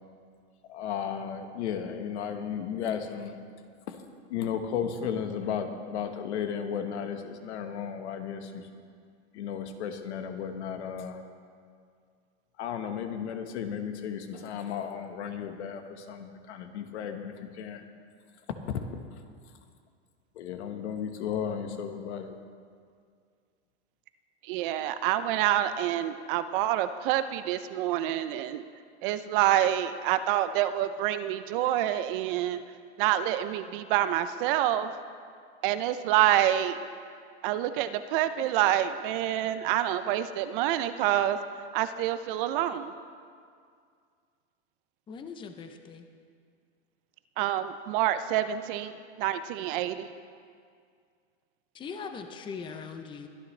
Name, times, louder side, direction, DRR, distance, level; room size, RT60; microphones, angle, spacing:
voice 1, 0.7-3.4 3.9-4.0 4.3-8.7 9.3-11.2 12.6-17.8 18.7-19.0 20.3-22.4, left 7 dB, 70° left, 7 dB, 1.4 m, -34 dB
voice 2, 24.5-28.6 29.0-32.6 33.0-34.9 35.6-36.8 37.4-41.4 41.7-42.9 47.4-48.9 49.2-50.1, right 12 dB, 50° right, 11 dB, 0.6 m, -27 dB
voice 3, 45.1-46.0 51.7-53.3, left 5 dB, 15° left, 7 dB, 0.6 m, -40 dB
23.0 x 10.0 x 3.3 m, 2.2 s
supercardioid pair, 135°, 35 cm